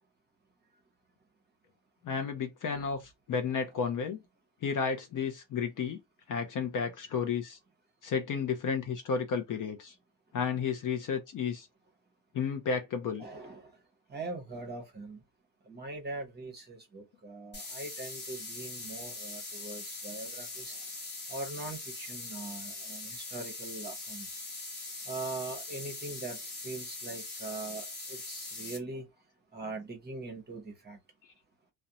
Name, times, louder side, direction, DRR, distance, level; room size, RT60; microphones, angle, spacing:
voice 1, 2.0-4.2 4.6-6.0 6.3-7.6 8.0-9.9 10.3-11.7 12.3-13.2, left 6 dB, 45° left, 0.4 m, -32 dB
voice 2, 13.2-13.7 14.1-15.2 15.7-20.8 21.3-24.4 25.1-29.0 29.5-31.0, right 3 dB, 20° right, 0.7 m, -42 dB
sound 1, 17.5-28.8, left 3 dB, 25° left, 0.9 m, -42 dB
2.5 x 2.1 x 2.7 m
cardioid pair, 155°, 46 cm